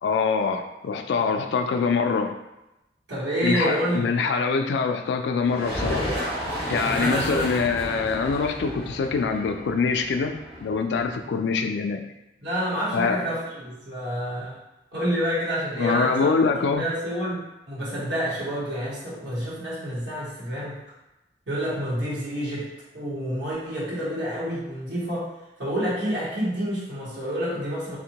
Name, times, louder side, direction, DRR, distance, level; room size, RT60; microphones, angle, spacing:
voice 1, 0.0-2.3 3.4-6.1 6.7-12.0 12.9-13.2 15.8-16.8, left 5 dB, 75° left, 5 dB, 0.3 m, -24 dB
voice 2, 3.1-4.0 6.8-7.6 12.4-14.6 14.9-16.3 16.8-20.8 21.5-22.7 22.9-25.3 25.6-28.0, equal, 85° right, -9 dB, 1.0 m, -28 dB
sound 1, 5.4-11.1, equal, 40° right, 1.4 m, -32 dB
3.5 x 2.1 x 2.8 m, 0.94 s
head